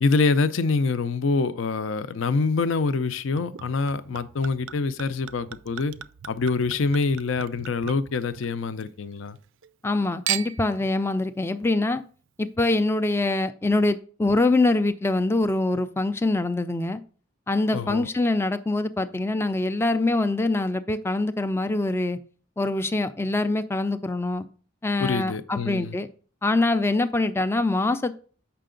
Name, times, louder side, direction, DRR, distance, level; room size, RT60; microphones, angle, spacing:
voice 1, 0.0-5.9 6.3-9.4 17.7-18.1 25.0-26.0, left 4 dB, 70° left, 13 dB, 0.5 m, -25 dB
Chink clink / Liquid, 3.4-8.9 9.2-9.9 10.3-10.8 11.5-11.6, right 11 dB, 70° right, 0.4 m, -37 dB
voice 2, 9.8-12.0 12.4-17.0 17.5-22.2 22.6-24.5 24.8-26.1 26.4-28.1, left 2 dB, 10° left, 11 dB, 0.3 m, -24 dB
7.5 x 5.7 x 3.8 m, 0.42 s
head